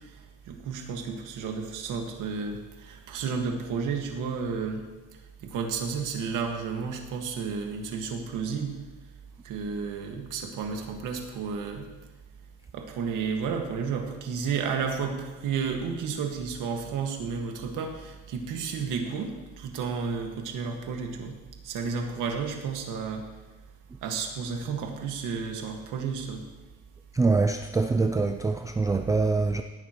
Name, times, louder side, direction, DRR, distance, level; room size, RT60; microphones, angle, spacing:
voice 1, 0.5-4.8 5.4-8.8 9.4-11.9 12.7-21.4 21.6-23.3 24.0-26.4, right 5 dB, 75° right, 2 dB, 1.9 m, -32 dB
voice 2, 27.1-29.6, right 3 dB, 10° right, 6 dB, 0.3 m, -24 dB
17.5 x 9.3 x 3.1 m, 1.2 s
cardioid pair, 140°, 31 cm